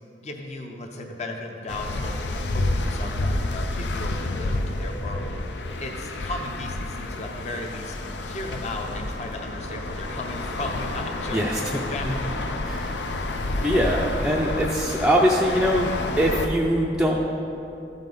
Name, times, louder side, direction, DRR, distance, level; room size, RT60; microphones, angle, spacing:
voice 1, 0.2-8.0 8.2-12.7, left 2 dB, 40° left, 2 dB, 0.6 m, -35 dB
sound 1, 1.7-16.5, left 2 dB, 85° left, 0.6 m, -29 dB
voice 2, 12.7-13.0 13.6-17.2, equal, 5° right, -3 dB, 0.4 m, -22 dB
14.0 x 5.5 x 3.9 m, 2.9 s
head